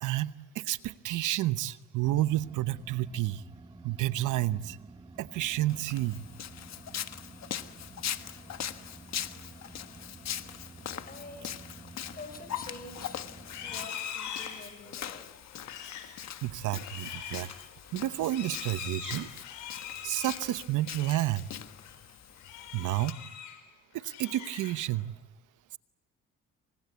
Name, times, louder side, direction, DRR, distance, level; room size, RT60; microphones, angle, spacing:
voice 1, 0.0-3.4 3.8-4.8 5.2-6.2 16.4-17.5 17.9-19.3 20.0-21.5 22.7-23.2 23.9-25.1, right 15 dB, 85° right, 14 dB, 1.0 m, -30 dB
sound 1, 2.0-13.9, right 3 dB, 15° right, 1.7 m, -51 dB
Walk footsteps, 5.7-23.1, left 10 dB, 60° left, 1.3 m, -41 dB
voice 2, 11.1-13.2 13.6-15.2, left 3 dB, 30° left, 8 dB, 6.1 m, -47 dB
Livestock farm animals working animals, 13.4-21.3 21.7-22.0 22.4-23.6 24.0-25.0, left 8 dB, 85° left, 5.3 m, -43 dB
28.5 x 25.0 x 8.3 m, 1.0 s
cardioid pair, 90°, 30 cm